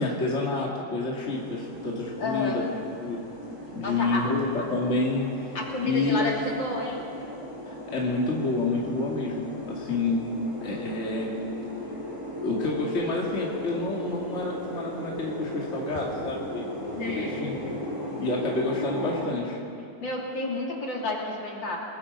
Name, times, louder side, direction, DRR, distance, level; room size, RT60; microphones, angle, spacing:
voice 1, 0.0-2.6 3.0-3.2 3.7-5.4 5.8-6.3 7.7-10.3 10.6-11.3 12.4-17.6 18.2-19.6, left 3 dB, 30° left, -3 dB, 2.5 m, -28 dB
sound 1, 1.2-19.3, left 1 dB, 10° right, 4.9 m, -37 dB
voice 2, 2.2-2.6 3.8-4.3 5.6-7.0 17.0-17.4 20.0-21.8, left 2 dB, 55° left, -2 dB, 3.6 m, -31 dB
28.5 x 19.0 x 5.4 m, 2.6 s
omnidirectional pair, 2.4 m